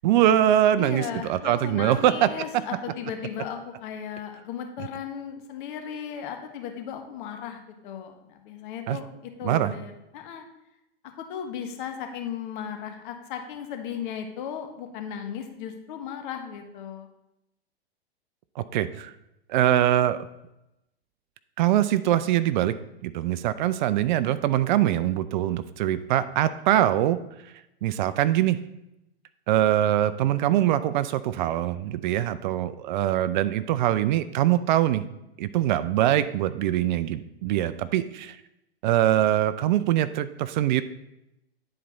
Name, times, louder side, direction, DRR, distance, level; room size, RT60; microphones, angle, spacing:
voice 1, 0.0-2.3 8.9-9.0 9.4-9.7 18.6-19.1 19.5-20.2 21.6-22.7 23.0-27.2 27.8-28.6 29.5-35.0 35.4-38.4 38.8-40.8, right 12 dB, 45° right, 14 dB, 0.5 m, -23 dB
voice 2, 0.8-10.5 11.0-17.1, left 8 dB, 50° left, 5 dB, 1.4 m, -36 dB
10.0 x 4.3 x 4.0 m, 0.87 s
hypercardioid pair, 120°, 32 cm